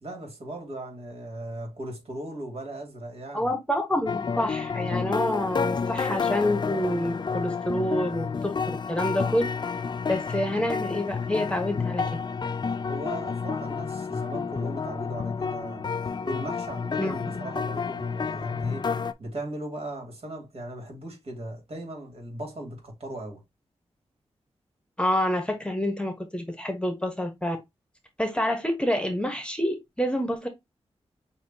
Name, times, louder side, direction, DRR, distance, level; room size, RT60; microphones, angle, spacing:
voice 1, 0.0-3.5 12.9-18.9 19.2-23.4, right 1 dB, 60° right, 2.4 m, -38 dB
voice 2, 3.3-8.5 8.9-9.5 10.1-12.0 17.0-17.3 25.0-27.6 28.2-30.5, left 1 dB, 10° left, 1.1 m, -27 dB
sound 1, 4.1-19.1, left 5 dB, 40° left, 0.4 m, -30 dB
6.4 x 2.8 x 2.8 m
wide cardioid pair, 75°, 11 cm